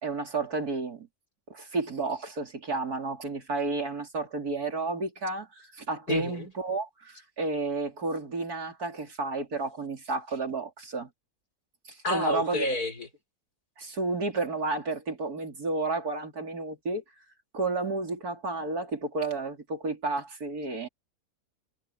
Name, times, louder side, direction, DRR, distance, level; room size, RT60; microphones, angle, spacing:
voice 1, 0.0-1.1 1.5-11.1 11.9-12.7 13.8-17.0 17.5-20.9, right 3 dB, 80° right, 4.0 m, -31 dB
voice 2, 6.1-6.5 12.0-13.1, left 1 dB, 90° left, 5.0 m, -30 dB
omnidirectional pair, 1.6 m